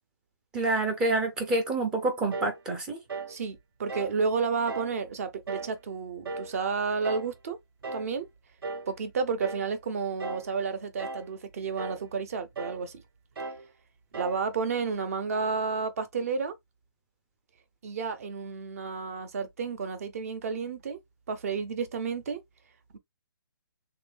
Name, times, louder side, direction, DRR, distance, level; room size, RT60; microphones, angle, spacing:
voice 1, 0.5-3.0, right 2 dB, 5° right, 0.5 m, -27 dB
sound 1, 2.3-2.6 3.1-3.4 3.9-4.2 4.7-5.0 5.5-5.8 6.2-6.6 7.0-7.3 7.8-8.1 8.6-8.9 9.4-9.7 10.2-10.5 11.0-11.3 11.8-12.0 12.6-12.8 13.4-13.7 14.1-14.4, right 3 dB, 70° right, 0.9 m, -37 dB
voice 2, 3.3-7.6 7.9-8.3 8.9-13.0 14.1-16.5 17.8-21.0 21.3-22.4, right 5 dB, 40° right, 0.7 m, -31 dB
3.4 x 2.5 x 3.4 m
hypercardioid pair, 170°, 12 cm